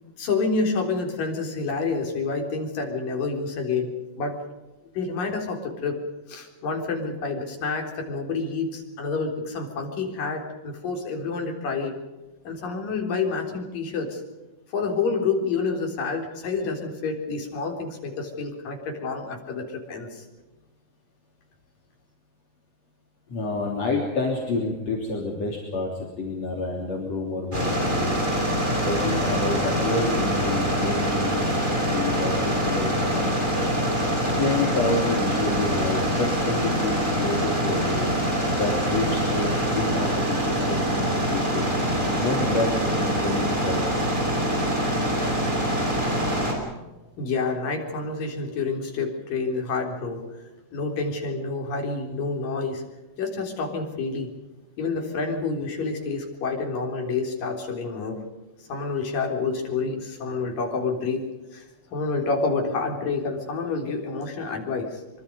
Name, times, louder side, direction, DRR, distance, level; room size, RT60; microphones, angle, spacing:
voice 1, 0.0-4.4 5.0-6.0 6.3-12.0 12.5-14.2 14.7-20.2 47.2-50.2 50.7-52.8 53.2-54.3 54.8-58.2 58.7-61.3 61.5-61.7 61.9-65.0, left 4 dB, 80° left, 2 dB, 5.4 m, -28 dB
voice 2, 23.3-28.2 28.9-33.7 34.4-38.2 38.5-43.8, left 3 dB, 50° left, 0 dB, 4.3 m, -29 dB
sound 1, 27.5-46.5, equal, 15° right, 5.4 m, -24 dB
25.0 x 24.5 x 5.3 m, 1.2 s
omnidirectional pair, 3.9 m